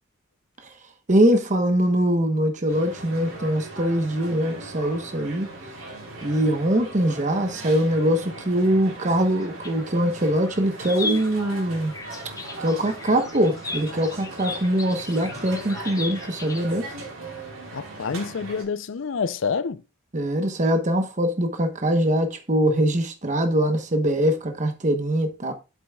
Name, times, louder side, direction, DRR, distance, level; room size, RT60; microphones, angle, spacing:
voice 1, 1.1-5.5 6.2-11.9 12.6-16.9 20.1-25.5, right 1 dB, 35° right, 1.0 m, -22 dB
sound 1, 2.7-18.6, right 2 dB, 75° right, 4.1 m, -39 dB
sound 2, 9.2-10.1 10.4-16.7, left 3 dB, 15° left, 0.7 m, -36 dB
voice 2, 17.7-19.8, left 5 dB, 60° left, 0.5 m, -28 dB
8.2 x 7.9 x 2.3 m
head